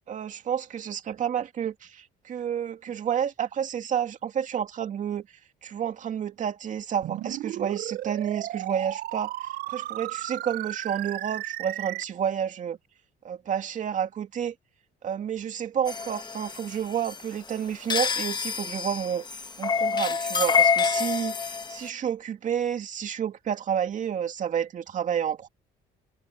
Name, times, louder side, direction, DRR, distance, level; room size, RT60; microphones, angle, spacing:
voice 1, 0.1-5.3 5.6-12.8 13.2-14.5 15.0-25.5, right 8 dB, 50° right, 2.4 m, -30 dB
sound 1, 7.0-12.0, right 15 dB, 70° right, 0.6 m, -34 dB
sound 2, 15.9-21.9, left 6 dB, 25° left, 1.1 m, -27 dB
cardioid pair, 110°, 17 cm